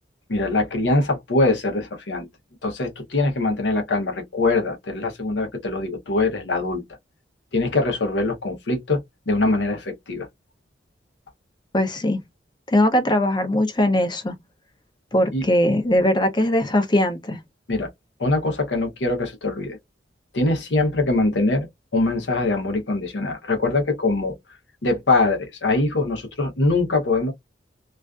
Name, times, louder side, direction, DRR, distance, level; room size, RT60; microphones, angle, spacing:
voice 1, 0.3-2.3 2.6-6.8 7.5-9.0 9.3-10.3 15.3-15.4 17.7-17.9 18.2-19.8 20.3-24.3 24.8-27.3, left 2 dB, 75° left, 0.7 m, -23 dB
voice 2, 11.7-12.2 12.7-14.3 15.1-17.4, left 1 dB, 25° left, 0.5 m, -20 dB
2.4 x 2.4 x 2.2 m
head